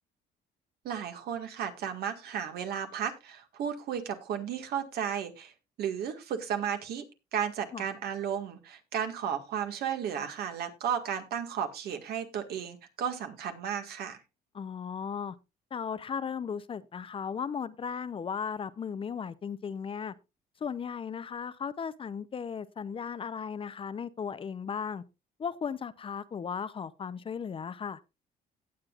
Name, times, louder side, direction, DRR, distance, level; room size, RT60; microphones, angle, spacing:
voice 1, 0.8-5.5 5.8-7.0 7.3-14.2, right 8 dB, 70° right, 1.8 m, -34 dB
voice 2, 14.5-15.4 15.7-20.1 20.6-25.0 25.4-28.0, left 6 dB, 30° left, 0.6 m, -36 dB
18.0 x 7.5 x 2.4 m
cardioid pair, 110°, 17 cm